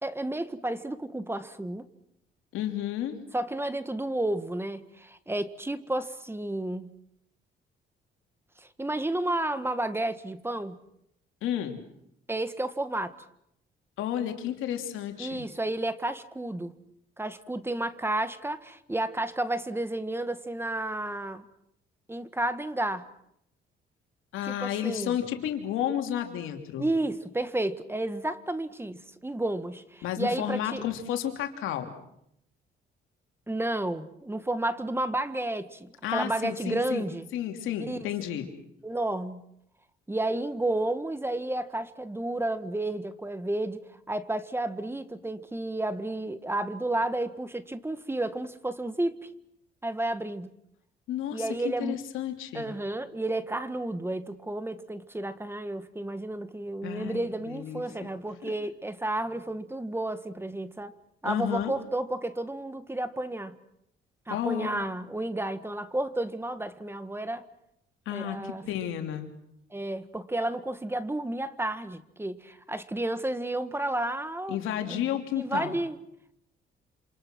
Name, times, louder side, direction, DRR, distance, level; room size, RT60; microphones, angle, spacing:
voice 1, 0.0-1.9 3.3-6.9 8.6-10.8 12.3-13.2 15.2-16.7 17.2-21.5 22.1-23.1 24.4-25.2 26.8-30.9 33.5-37.3 37.8-38.0 38.8-39.4 40.1-49.3 49.8-50.5 51.3-52.0 52.5-60.9 61.2-63.6 64.3-67.5 68.1-68.8 69.7-74.6 74.9-75.0 75.3-76.0, right 1 dB, 10° right, 12 dB, 1.7 m, -31 dB
voice 2, 2.5-3.2 11.4-11.8 14.0-15.4 24.3-26.9 30.0-31.9 36.0-37.0 37.3-38.5 51.1-52.7 56.8-58.1 58.4-58.5 61.2-61.7 64.3-64.8 68.1-69.3 74.5-75.7, left 10 dB, 90° left, 5 dB, 3.1 m, -32 dB
28.0 x 27.0 x 6.2 m, 0.76 s
cardioid pair, 90°, 20 cm